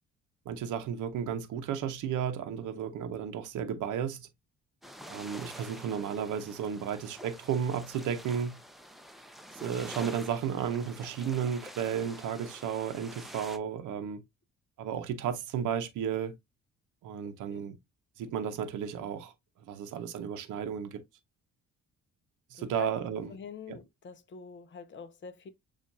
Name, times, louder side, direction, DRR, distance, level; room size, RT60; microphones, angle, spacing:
voice 1, 0.5-4.3 5.1-8.6 9.6-14.2 14.8-16.4 17.0-17.8 18.2-19.3 19.7-21.0 22.5-23.3 23.7-23.8, right 8 dB, 80° right, 0.8 m, -33 dB
sound 1, 4.8-13.6, equal, ahead, 0.6 m, -47 dB
voice 2, 5.0-5.3 17.5-17.6 22.5-22.9 23.3-25.5, left 6 dB, 40° left, 0.7 m, -46 dB
7.1 x 2.5 x 2.6 m
cardioid pair, 90°, 30 cm